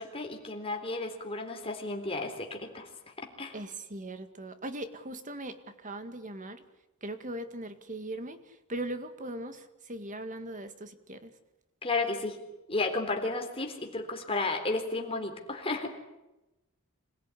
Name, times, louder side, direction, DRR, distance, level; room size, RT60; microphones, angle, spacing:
voice 1, 0.0-2.9 3.2-3.6 11.8-12.4 12.7-15.9, left 3 dB, 25° left, 3 dB, 3.9 m, -33 dB
voice 2, 3.5-5.6 5.8-6.6 7.0-8.4 8.7-11.3, right 1 dB, 35° right, 9 dB, 2.0 m, -39 dB
26.5 x 16.5 x 9.9 m, 1.0 s
head